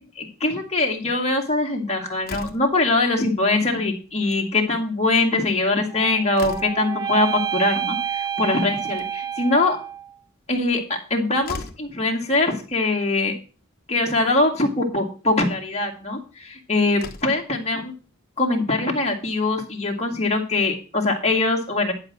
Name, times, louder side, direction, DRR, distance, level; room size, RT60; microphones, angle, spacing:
voice 1, 0.2-9.8 10.5-13.3 13.9-17.9 18.4-21.9, left 2 dB, 30° left, 0 dB, 2.2 m, -22 dB
Slam, 2.2-2.8 4.1-4.5 4.8-4.9 5.2-5.3 5.8-7.0 8.7-9.4 11.0-11.1 11.4-11.9 13.1-13.2 13.6-13.7 14.5-14.7 16.4-16.5 16.9-17.5, left 3 dB, 45° left, 1.1 m, -38 dB
sound 1, 5.9-10.2, right 9 dB, 20° right, 0.4 m, -29 dB
10.5 x 5.0 x 6.1 m, 0.35 s
head